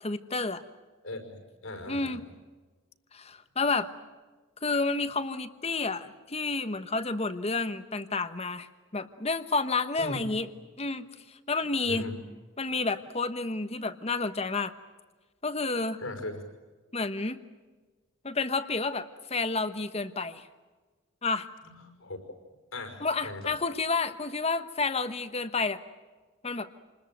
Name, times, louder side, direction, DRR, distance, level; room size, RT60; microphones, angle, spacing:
voice 1, 0.0-0.6 1.9-2.2 3.1-3.9 4.6-8.7 8.9-10.5 10.8-12.0 12.6-14.7 15.4-16.0 16.9-17.4 18.2-20.5 21.2-21.5 23.0-25.8 26.4-26.7, left 3 dB, 30° left, 11 dB, 1.2 m, -30 dB
voice 2, 1.0-2.2 10.0-10.3 11.9-12.3 16.0-16.4 21.6-22.2 22.7-23.5, left 1 dB, 85° left, 5 dB, 5.6 m, -38 dB
28.0 x 21.0 x 9.1 m, 1.3 s
head